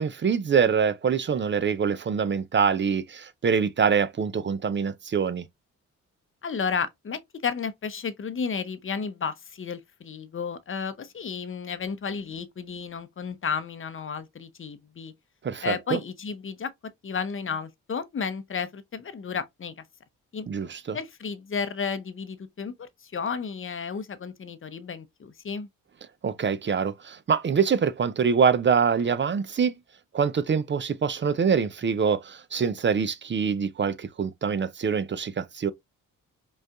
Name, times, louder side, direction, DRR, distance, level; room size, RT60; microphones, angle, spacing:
voice 1, 0.0-5.4 15.4-16.0 20.5-21.0 26.2-29.7 30.1-35.7, right 6 dB, 30° right, 0.5 m, -25 dB
voice 2, 6.4-15.1 15.6-16.7 17.0-19.7 20.3-20.5 20.9-25.7, left 6 dB, 30° left, 0.7 m, -32 dB
5.0 x 2.4 x 2.4 m
hypercardioid pair, 45°, 40 cm